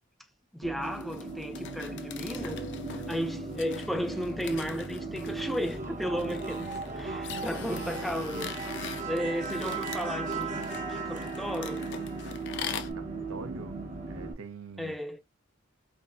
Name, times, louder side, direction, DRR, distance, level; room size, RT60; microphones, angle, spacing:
voice 1, 0.5-2.6 3.1-6.7 6.9-8.5 8.7-11.8 14.8-15.2, equal, ahead, 0.4 m, -34 dB
sound 1, 0.6-14.3, right 3 dB, 40° right, 0.8 m, -36 dB
sound 2, 0.8-12.9, left 8 dB, 60° left, 0.4 m, -43 dB
sound 3, 2.4-12.2 12.5-12.6, right 2 dB, 85° left, 1.6 m, -49 dB
voice 2, 7.0-8.2 12.8-13.8 14.1-15.0, right 4 dB, 70° right, 0.7 m, -45 dB
5.1 x 2.1 x 2.4 m
head